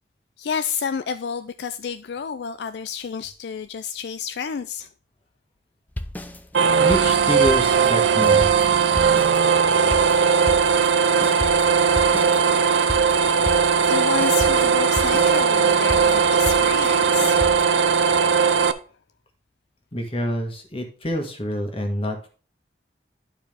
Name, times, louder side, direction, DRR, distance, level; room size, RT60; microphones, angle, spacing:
voice 1, 0.4-4.9 13.9-17.5, left 6 dB, 70° left, 0.4 m, -30 dB
sound 1, 5.9-8.0 8.2-13.9 14.2-17.7, left 1 dB, 10° left, 0.5 m, -33 dB
sound 2, 6.5-18.7, right 6 dB, 85° right, 0.6 m, -18 dB
voice 2, 6.8-8.5 19.9-22.3, equal, 30° left, 1.6 m, -27 dB
11.0 x 4.7 x 3.4 m
head